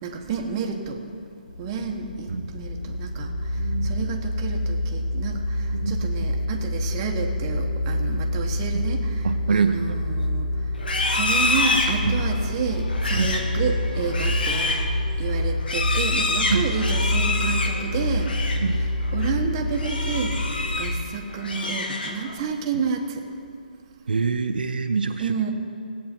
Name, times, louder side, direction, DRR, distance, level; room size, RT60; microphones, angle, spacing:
voice 1, 0.0-1.0 1.6-10.5 11.1-14.8 15.2-18.3 19.1-20.4 20.8-23.2 25.2-25.5, right 5 dB, 25° right, 2 dB, 1.1 m, -30 dB
sound 1, 1.5-20.9, left 1 dB, 65° left, 1.8 m, -27 dB
voice 2, 3.6-4.1 5.7-6.1 8.7-8.8 9.2-10.0 12.0-12.1 13.1-13.3 16.5-16.7 18.6-18.8 24.1-25.4, right 5 dB, 80° right, 7 dB, 0.7 m, -25 dB
Livestock farm animals working animals, 10.8-18.7 19.0-19.3 19.7-21.0 21.3-22.4, left 2 dB, 80° left, 1.4 m, -27 dB
17.5 x 8.5 x 4.5 m, 2.5 s
hypercardioid pair, 160°, 5 cm